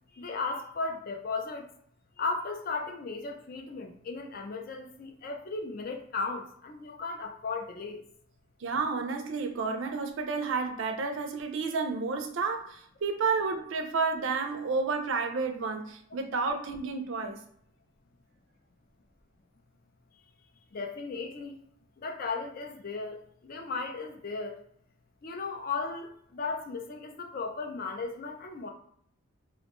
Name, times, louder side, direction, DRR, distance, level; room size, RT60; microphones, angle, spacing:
voice 1, 0.2-1.7 2.2-8.0 20.7-21.6 22.0-23.2 23.4-24.6 25.2-28.7, left 4 dB, 45° left, 0.4 m, -36 dB
voice 2, 8.6-17.4, right 4 dB, 65° right, 0.4 m, -31 dB
2.5 x 2.1 x 2.9 m
head